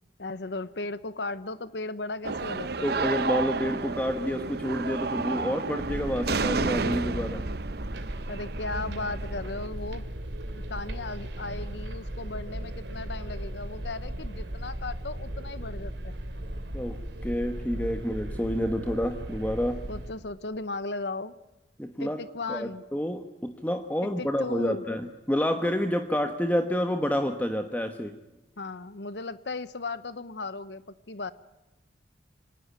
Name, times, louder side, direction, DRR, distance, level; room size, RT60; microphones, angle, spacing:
voice 1, 0.2-3.0 8.3-10.0 10.7-16.2 19.9-21.3 22.0-22.8 24.0-24.8 28.6-30.8 31.1-31.3, left 3 dB, 70° left, 15 dB, 1.0 m, -36 dB
sound 1, 2.2-9.7, right 4 dB, 60° right, 0.8 m, -31 dB
voice 2, 2.8-7.4 16.7-19.8 21.8-22.2 22.5-28.1, equal, 10° left, 7 dB, 1.1 m, -29 dB
sound 2, 5.8-20.1, right 1 dB, 80° right, 2.8 m, -37 dB
25.5 x 19.0 x 9.4 m, 1.0 s
head